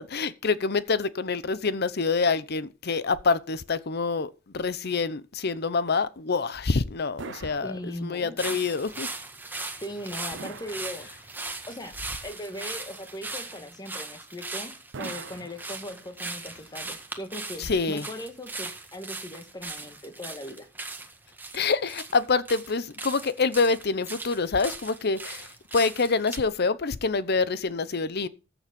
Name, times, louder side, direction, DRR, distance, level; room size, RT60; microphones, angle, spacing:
voice 1, 0.0-7.8 8.0-9.1 17.6-18.1 21.5-25.5 25.7-28.3, left 4 dB, 55° left, 0.8 m, -26 dB
sound 1, 7.2-8.4 10.3-11.5 14.9-16.2, right 4 dB, 65° right, 0.8 m, -43 dB
voice 2, 7.6-8.6 9.8-11.4 11.7-11.9 12.2-14.7 15.0-20.7, left 1 dB, 20° left, 1.7 m, -39 dB
sound 2, 8.4-26.4, right 3 dB, 10° right, 1.7 m, -39 dB
14.5 x 7.2 x 5.2 m
head